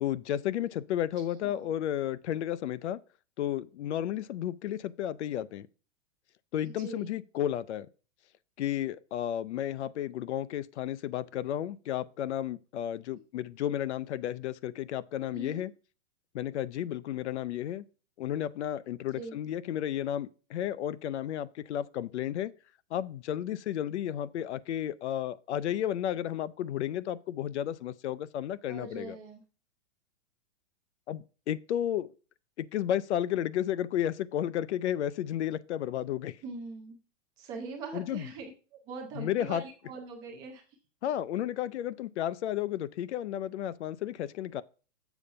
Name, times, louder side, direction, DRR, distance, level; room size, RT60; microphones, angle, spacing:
voice 1, 0.0-3.0 3.4-5.7 6.5-7.9 8.6-15.7 16.3-17.8 18.2-22.5 22.9-29.2 31.1-32.1 32.6-36.4 37.9-38.2 39.2-39.6 41.0-44.6, left 11 dB, 65° left, 0.5 m, -32 dB
voice 2, 6.6-7.2 15.3-15.6 19.1-19.4 28.7-29.4 36.4-37.0 37.4-38.5 38.9-40.6, right 4 dB, 10° right, 0.4 m, -42 dB
7.1 x 5.1 x 5.5 m
hypercardioid pair, 165°, 37 cm